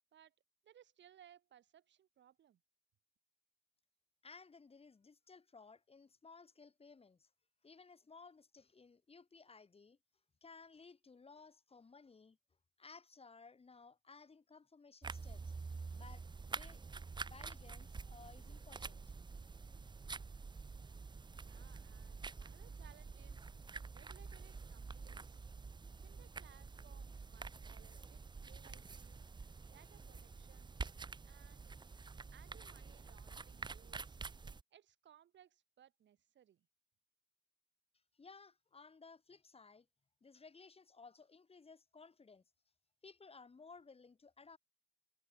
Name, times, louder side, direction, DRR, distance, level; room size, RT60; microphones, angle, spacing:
voice 1, 0.6-2.6 21.4-23.5 23.9-25.4 26.0-28.2 28.4-29.2 29.7-30.7 31.2-31.7 32.3-34.2 34.7-36.7, right 10 dB, 65° right, 4.6 m, -65 dB
voice 2, 4.2-7.3 7.6-10.0 10.4-12.4 12.8-15.5 15.9-16.8 17.2-19.4 38.1-39.9 40.2-42.4 43.0-44.6, left 4 dB, 30° left, 2.8 m, -59 dB
sound 1, 15.0-34.6, right 4 dB, 20° right, 0.8 m, -48 dB
cardioid pair, 90°, 20 cm